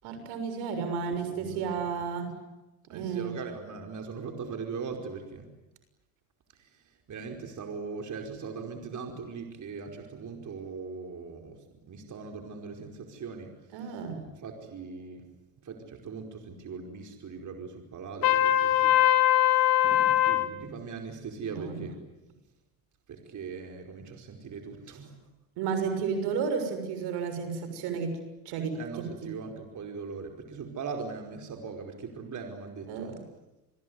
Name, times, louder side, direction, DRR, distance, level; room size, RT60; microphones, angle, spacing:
voice 1, 0.0-2.4 2.9-3.3 13.7-14.3 21.6-21.8 25.6-28.2 28.4-29.0 32.9-33.2, right 6 dB, 80° right, 8 dB, 6.8 m, -32 dB
voice 2, 1.1-1.8 2.9-5.5 6.5-15.3 15.6-19.0 19.4-22.0 23.1-25.2 25.8-26.1 28.7-33.2, right 5 dB, 45° right, 3 dB, 5.0 m, -40 dB
Trumpet, 18.2-20.5, left 13 dB, 60° left, 4.1 m, -22 dB
28.0 x 21.5 x 9.6 m, 1.0 s
supercardioid pair, 85°, 40 cm